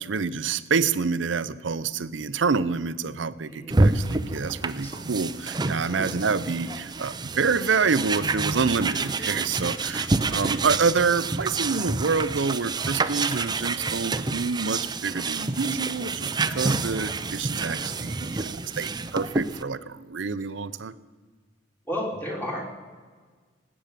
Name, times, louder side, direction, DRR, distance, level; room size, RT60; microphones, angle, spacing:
voice 1, 0.0-20.9, right 5 dB, 80° right, 15 dB, 0.6 m, -27 dB
voice 2, 3.5-3.8 4.8-4.9 5.9-6.1 9.7-10.0 10.3-10.4 21.9-22.6, equal, 10° left, -1 dB, 3.5 m, -33 dB
sound 1, 3.7-19.6, right 3 dB, 25° right, 0.6 m, -28 dB
19.5 x 8.9 x 6.8 m, 1.5 s
head